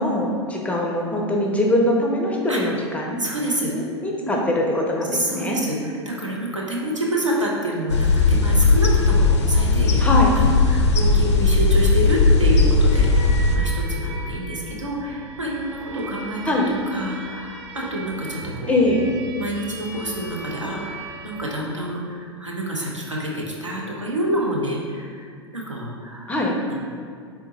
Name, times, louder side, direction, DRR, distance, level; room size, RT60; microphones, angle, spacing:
voice 1, 0.0-3.2 3.6-5.6 10.0-10.3 16.5-16.7 18.7-19.0 26.3-26.6, left 1 dB, 10° left, -1 dB, 0.4 m, -22 dB
voice 2, 3.2-3.7 4.2-4.4 5.1-10.1 10.4-13.3 13.5-16.5 16.9-18.8 19.3-25.3 25.5-26.3 26.7-26.8, right 1 dB, 90° right, -3 dB, 0.7 m, -28 dB
sound 1, 7.9-13.6, left 3 dB, 65° left, 0.4 m, -17 dB
sound 2, 12.9-21.4, right 2 dB, 50° right, 1.1 m, -38 dB
3.7 x 3.5 x 2.9 m, 2.2 s
figure-of-eight pair, 90°, 15 cm